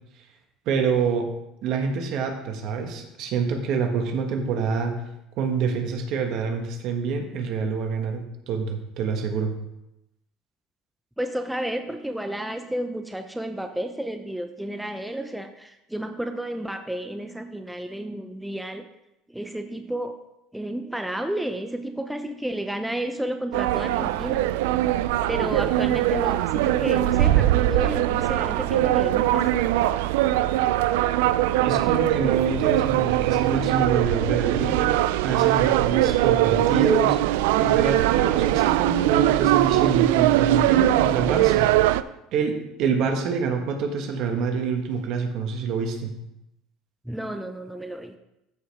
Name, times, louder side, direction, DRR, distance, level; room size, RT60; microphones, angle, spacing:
voice 1, 0.6-1.3 1.6-5.1 5.4-9.5 31.6-37.2 37.6-41.7 42.3-46.1, right 5 dB, 60° right, 4 dB, 1.5 m, -26 dB
voice 2, 11.2-18.9 19.3-20.2 20.5-24.5 25.3-29.6 47.0-48.1, right 1 dB, 5° right, 6 dB, 0.6 m, -31 dB
sound 1, 23.5-42.0, right 14 dB, 90° right, 0.3 m, -21 dB
13.5 x 5.1 x 3.5 m, 0.88 s
supercardioid pair, 115°, 0 cm